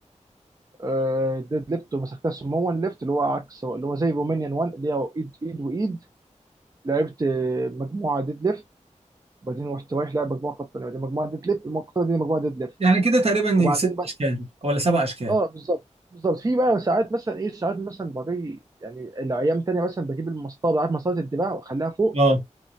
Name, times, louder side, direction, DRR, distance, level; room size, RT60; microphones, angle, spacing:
voice 1, 0.8-6.0 6.8-8.6 9.4-12.7 13.6-14.1 15.3-15.8 16.1-22.2, right 2 dB, 30° right, 0.4 m, -26 dB
voice 2, 12.8-13.9 14.2-15.3 22.1-22.4, right 2 dB, 55° right, 1.0 m, -21 dB
3.0 x 2.1 x 2.5 m
wide cardioid pair, 80°, 13 cm